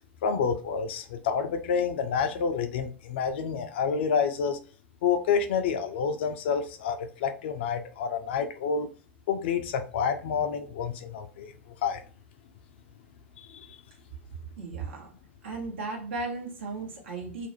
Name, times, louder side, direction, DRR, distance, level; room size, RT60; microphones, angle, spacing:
voice 1, 0.2-4.6 5.0-8.9 9.3-11.5 11.8-12.0 13.4-13.7, left 6 dB, 60° left, 7 dB, 0.4 m, -28 dB
voice 2, 14.6-15.1 15.4-17.5, right 3 dB, 65° right, 1 dB, 0.8 m, -35 dB
2.4 x 2.0 x 2.9 m, 0.40 s
figure-of-eight pair, 90°, 7 cm